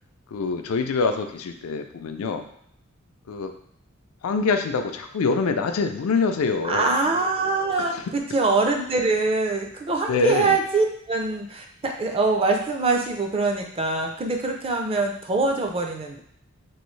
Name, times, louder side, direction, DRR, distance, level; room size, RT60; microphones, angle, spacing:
voice 1, 0.3-2.5 3.3-3.5 4.2-6.9 7.8-8.0 10.1-10.6, left 4 dB, 85° left, 6 dB, 0.4 m, -25 dB
voice 2, 6.6-16.2, right 3 dB, 25° right, 2 dB, 0.4 m, -24 dB
3.1 x 2.6 x 3.1 m, 0.68 s
head